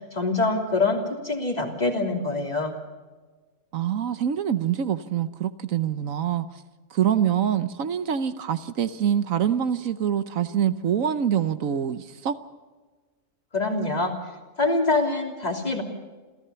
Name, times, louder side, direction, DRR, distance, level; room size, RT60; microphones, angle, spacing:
voice 1, 0.1-2.7 13.5-14.1 14.6-15.8, left 3 dB, 30° left, 2 dB, 3.1 m, -24 dB
voice 2, 3.7-6.5 6.9-12.3, right 9 dB, 75° right, 12 dB, 1.3 m, -25 dB
27.5 x 15.5 x 6.9 m, 1.3 s
omnidirectional pair, 1.4 m